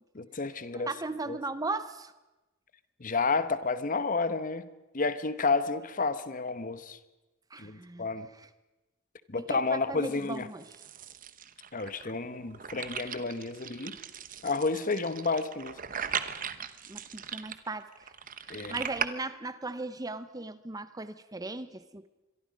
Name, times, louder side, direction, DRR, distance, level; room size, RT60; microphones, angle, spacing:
voice 1, 0.1-0.9 1.3-1.4 3.0-4.7 4.9-7.0 7.6-8.3 9.3-10.5 11.7-14.0 14.4-15.8 18.5-18.8, left 4 dB, 40° left, 13 dB, 1.0 m, -31 dB
voice 2, 0.7-2.1 7.5-8.1 9.5-10.6 16.9-17.9 18.7-22.1, right 3 dB, 20° right, 13 dB, 0.7 m, -37 dB
sound 1, 10.1-19.1, right 8 dB, 40° right, 1.0 m, -39 dB
25.5 x 22.5 x 5.2 m, 1.1 s
head